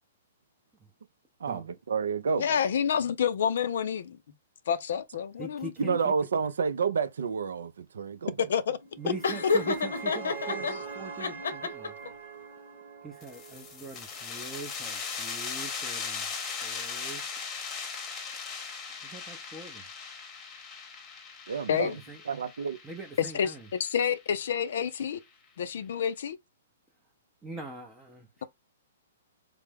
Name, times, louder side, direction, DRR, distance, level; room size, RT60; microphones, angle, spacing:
voice 1, 1.4-2.6 5.8-8.5 10.5-10.6 21.5-21.9 22.3-22.8, right 6 dB, 75° right, 0.4 m, -30 dB
voice 2, 2.4-4.2 4.7-6.0 8.4-8.8 21.7-22.0 23.2-25.2 25.6-26.4, left 8 dB, 65° left, 0.4 m, -28 dB
voice 3, 5.4-6.1 9.0-11.9 13.0-17.2 19.0-19.8 21.7-22.2 22.8-23.7 27.4-28.4, right 3 dB, 10° right, 0.5 m, -42 dB
sound 1, 8.8-14.0, right 4 dB, 50° right, 1.0 m, -42 dB
Laughter, 9.2-10.7 11.2-12.1, left 4 dB, 85° left, 0.8 m, -28 dB
sound 2, 13.2-24.5, left 5 dB, 25° left, 0.8 m, -39 dB
3.3 x 2.0 x 3.3 m
hypercardioid pair, 135°, 0 cm